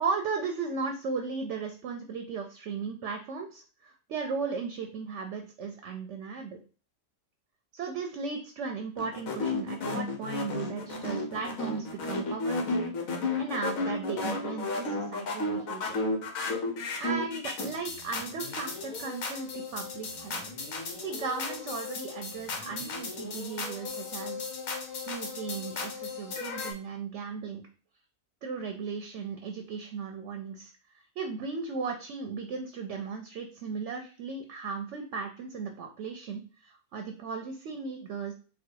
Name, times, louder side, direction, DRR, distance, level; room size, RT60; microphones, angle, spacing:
voice 1, 0.0-6.6 7.7-16.0 17.0-20.4 21.0-24.5 24.9-27.6 28.4-30.7 31.2-38.3, right 5 dB, 65° right, 5 dB, 0.9 m, -36 dB
sound 1, 9.0-26.7, left 3 dB, 70° left, 1.4 m, -34 dB
4.2 x 2.3 x 4.5 m, 0.36 s
omnidirectional pair, 1.5 m